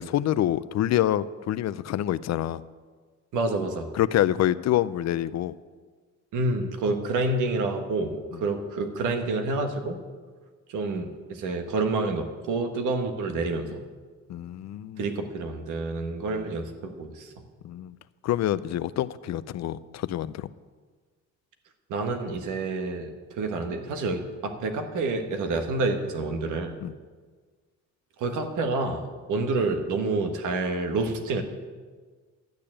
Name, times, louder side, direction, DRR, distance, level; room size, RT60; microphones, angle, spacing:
voice 1, 0.0-2.6 3.9-5.5 8.3-8.4 14.3-15.1 17.6-18.0 18.2-20.5 26.8-26.9, left 12 dB, 60° left, 16 dB, 0.5 m, -26 dB
voice 2, 3.3-3.9 6.3-10.0 10.7-13.8 15.0-17.3 21.9-26.8 28.2-31.4, right 3 dB, 85° right, 5 dB, 1.5 m, -28 dB
12.0 x 6.7 x 8.7 m, 1.5 s
cardioid pair, 90°, 30 cm